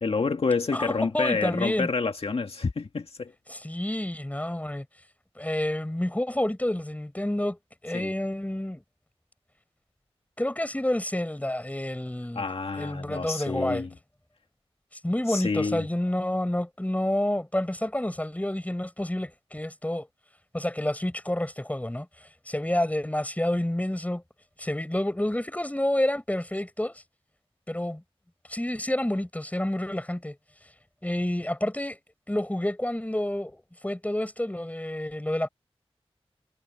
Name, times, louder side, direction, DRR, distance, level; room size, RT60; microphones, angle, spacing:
voice 1, 0.0-3.3 7.9-8.1 12.4-13.9 15.3-15.9, left 4 dB, 70° left, 2.0 m, -28 dB
voice 2, 0.7-1.9 3.5-4.8 5.4-7.6 7.8-8.8 10.4-12.5 12.8-13.8 15.0-20.1 20.5-22.1 22.5-24.2 24.6-26.9 27.7-28.0 28.5-30.4 31.0-32.0 32.3-35.5, left 1 dB, 15° left, 7.7 m, -29 dB
wide cardioid pair, 65°, 10 cm